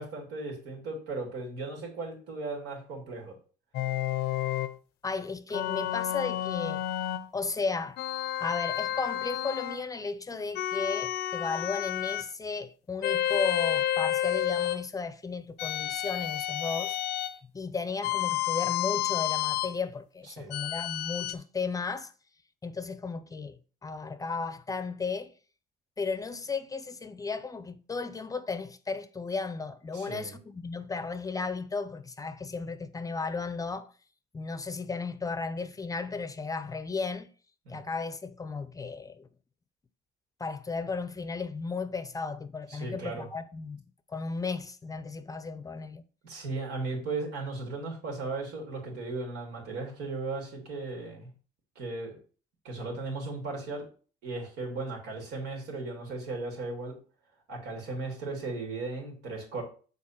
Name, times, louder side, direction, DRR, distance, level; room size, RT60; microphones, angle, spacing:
voice 1, 0.0-3.3 20.4-20.5 29.9-30.3 37.7-37.8 42.7-43.3 46.2-51.3 51.8-52.1 52.6-53.8 54.2-56.9 57.5-59.6, right 3 dB, 85° right, 2.9 m, -36 dB
sound 1, 3.7-4.8 5.5-7.3 8.0-9.8 10.5-12.3 13.0-14.8 15.6-17.4 18.0-19.8 20.5-21.3, left 13 dB, 75° left, 0.6 m, -30 dB
voice 2, 5.0-6.8 7.3-8.0 8.4-17.0 17.4-22.1 22.6-25.3 26.0-33.9 34.3-37.3 37.7-39.3 40.4-43.8 44.1-46.0, left 4 dB, 20° left, 0.6 m, -34 dB
6.4 x 4.2 x 5.8 m
cardioid pair, 110°, 17 cm